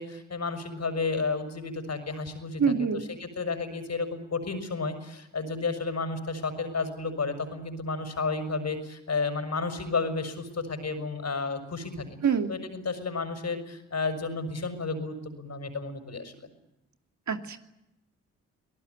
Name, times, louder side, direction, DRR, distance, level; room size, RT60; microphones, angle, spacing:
voice 1, 0.0-2.6 2.9-12.1 12.5-16.5, left 4 dB, 45° left, 10 dB, 6.4 m, -32 dB
voice 2, 2.6-3.0 12.2-12.5 17.3-17.6, right 6 dB, 50° right, 6 dB, 2.7 m, -25 dB
25.5 x 19.0 x 9.6 m, 0.88 s
hypercardioid pair, 45°, 36 cm